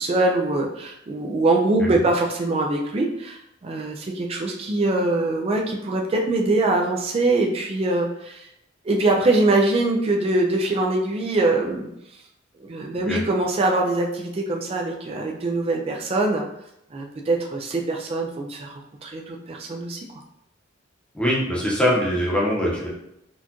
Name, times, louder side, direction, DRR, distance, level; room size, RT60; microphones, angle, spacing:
voice 1, 0.0-8.5 8.8-11.9 12.6-16.4 16.9-20.0, right 2 dB, 30° right, 1 dB, 0.3 m, -23 dB
voice 2, 21.1-22.9, equal, 5° left, -5 dB, 0.8 m, -22 dB
4.2 x 2.4 x 2.9 m, 0.80 s
head